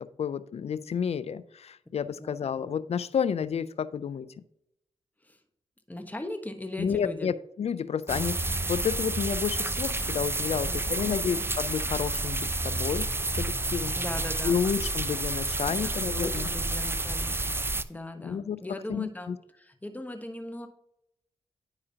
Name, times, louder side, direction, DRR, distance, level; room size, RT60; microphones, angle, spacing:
voice 1, 0.0-4.3 6.8-13.9 14.4-16.5 18.2-18.6 18.9-19.4, left 7 dB, 55° left, 15 dB, 0.5 m, -31 dB
voice 2, 5.9-7.3 10.6-11.5 13.9-14.6 15.7-20.7, left 1 dB, 15° left, 6 dB, 1.1 m, -39 dB
sound 1, 8.1-17.8, right 2 dB, 20° right, 0.5 m, -30 dB
9.8 x 4.8 x 2.8 m, 0.79 s
supercardioid pair, 40°, 13 cm